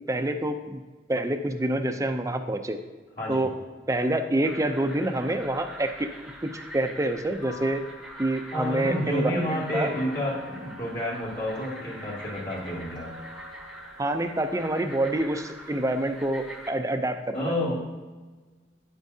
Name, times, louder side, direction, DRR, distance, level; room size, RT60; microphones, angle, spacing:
voice 1, 0.1-0.8 1.1-2.8 3.3-3.6 3.9-6.1 6.4-7.8 8.2-9.9 14.0-17.6, right 1 dB, 20° right, 7 dB, 0.5 m, -27 dB
sound 1, 4.4-16.7, equal, ahead, 0.9 m, -44 dB
sound 2, 7.4-8.4 8.8-14.9, left 4 dB, 25° left, 1.4 m, -49 dB
voice 2, 8.5-13.1 17.3-17.7, left 1 dB, 55° left, -7 dB, 2.4 m, -29 dB
9.4 x 8.2 x 2.7 m, 1.3 s
head